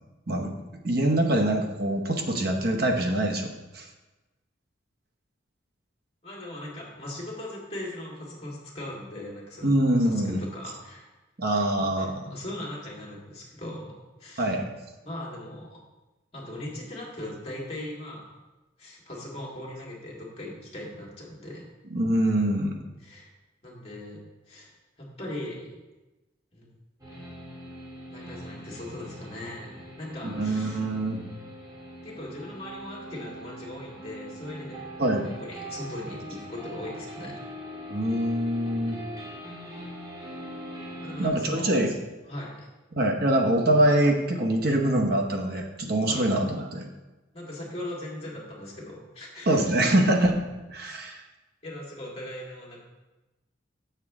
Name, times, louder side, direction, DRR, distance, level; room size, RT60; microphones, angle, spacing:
voice 1, 0.8-3.9 9.6-10.4 11.4-12.1 14.4-14.7 21.9-22.8 30.2-31.2 35.0-35.3 37.9-39.0 41.2-41.9 43.0-46.9 49.5-50.3 50.7-51.2, right 1 dB, 50° right, 2 dB, 0.9 m, -24 dB
voice 2, 6.2-9.7 10.0-11.1 11.8-14.6 15.0-15.8 16.3-18.2 18.8-21.6 23.0-23.3 23.6-24.7 25.0-25.8 26.5-26.7 28.1-30.8 32.0-34.9 35.2-37.4 41.0-41.7 42.3-42.7 46.0-46.3 47.3-49.7 50.8-51.0 51.6-52.8, left 1 dB, 30° left, -4 dB, 1.9 m, -39 dB
sound 1, 27.0-41.3, equal, 20° right, 1.6 m, -42 dB
6.7 x 6.3 x 3.6 m, 1.1 s
head